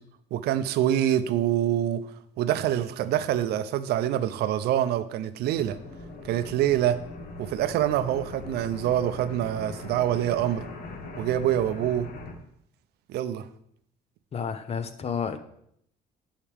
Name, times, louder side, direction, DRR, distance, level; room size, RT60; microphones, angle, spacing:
voice 1, 0.3-2.0 2.4-5.8 6.2-7.0 7.4-10.6 11.2-12.1 13.1-13.5, right 11 dB, 75° right, 13 dB, 0.5 m, -25 dB
sound 1, 5.5-12.3, left 3 dB, 55° left, 1.2 m, -41 dB
voice 2, 14.3-15.4, left 6 dB, 35° left, 10 dB, 0.7 m, -31 dB
10.0 x 4.8 x 3.4 m, 0.71 s
cardioid pair, 110°, 17 cm